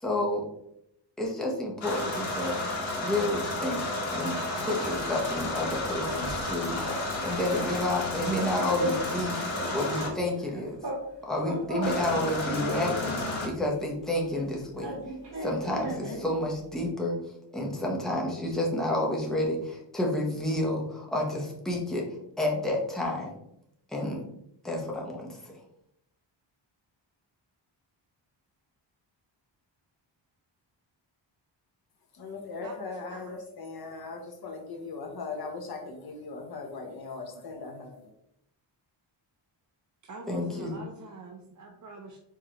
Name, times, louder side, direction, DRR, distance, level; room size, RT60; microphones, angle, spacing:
voice 1, 0.0-0.5 1.2-2.6 3.0-3.9 4.1-9.4 9.7-10.8 11.3-15.0 15.4-17.2 17.5-22.1 22.4-23.3 23.9-24.2 24.6-25.6 40.3-40.8, left 1 dB, ahead, -2 dB, 0.9 m, -30 dB
sound 1, 1.8-10.1 11.8-13.5, left 2 dB, 75° left, 1.4 m, -32 dB
sound 2, 5.1-6.5 6.8-7.1 7.3-9.2 9.5-11.1 11.3-13.5 14.3-16.3, right 1 dB, 65° right, 1.8 m, -36 dB
voice 2, 32.1-38.1, left 4 dB, 50° left, 3 dB, 1.0 m, -39 dB
voice 3, 40.1-42.2, right 3 dB, 40° right, 1 dB, 0.6 m, -45 dB
4.7 x 3.7 x 2.9 m, 0.77 s
wide cardioid pair, 140°, 46 cm